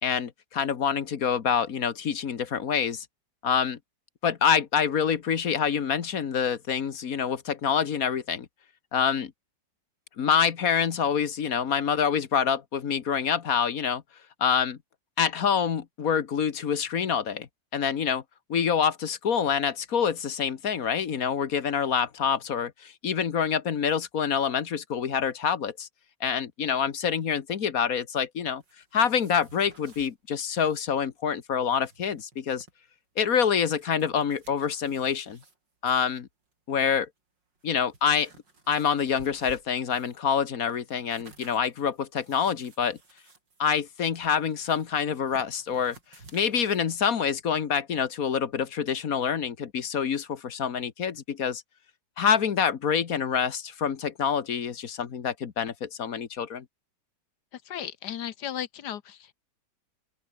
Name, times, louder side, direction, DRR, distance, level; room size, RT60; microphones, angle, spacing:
voice 1, 0.0-3.1 3.4-3.8 4.2-8.5 8.9-9.3 10.2-14.0 14.4-14.8 15.2-18.2 18.5-25.9 26.2-28.6 28.9-32.7 33.2-35.4 35.8-36.3 36.7-37.1 37.6-38.3 38.7-43.0 43.6-46.0 46.3-51.6 52.2-56.6, left 7 dB, 55° left, 1.7 m, -26 dB
sound 1, 28.6-30.1 30.5-30.9 31.1-31.2 31.6-32.7 33.2-35.5 35.9-36.2 37.0-37.1 37.6-40.2 40.6-46.8, right 3 dB, 85° right, 5.1 m, -54 dB
voice 2, 57.5-59.3, left 10 dB, 70° left, 1.5 m, -36 dB
open air
omnidirectional pair, 1.9 m